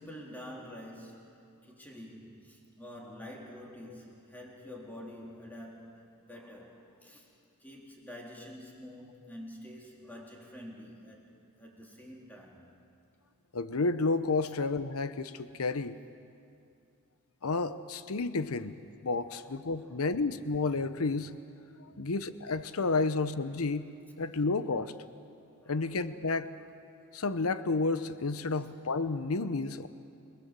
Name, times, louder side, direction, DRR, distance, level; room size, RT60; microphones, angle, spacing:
voice 1, 0.0-7.3 7.6-12.7 19.3-20.1 21.9-22.1 25.6-26.0 28.5-28.6, left 1 dB, 10° left, -2 dB, 3.5 m, -48 dB
voice 2, 13.5-16.0 17.4-18.7 19.0-21.4 21.8-23.9 24.2-24.9 25.7-26.5 27.1-29.9, left 3 dB, 80° left, 12 dB, 0.8 m, -31 dB
29.5 x 19.5 x 7.5 m, 2.5 s
head